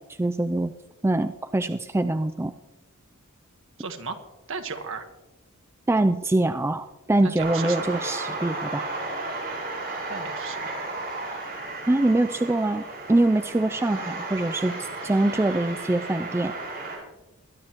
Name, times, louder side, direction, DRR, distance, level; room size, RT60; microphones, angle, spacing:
voice 1, 0.2-0.7 1.0-2.5 5.9-8.9 11.9-16.5, right 2 dB, 10° right, 8 dB, 0.3 m, -24 dB
voice 2, 3.8-4.2 4.5-5.1 7.2-8.0 10.1-10.6, right 4 dB, 60° right, 6 dB, 1.4 m, -35 dB
sound 1, 7.4-17.0, right 2 dB, 45° right, 5.6 m, -34 dB
21.5 x 11.0 x 3.0 m, 1.0 s
head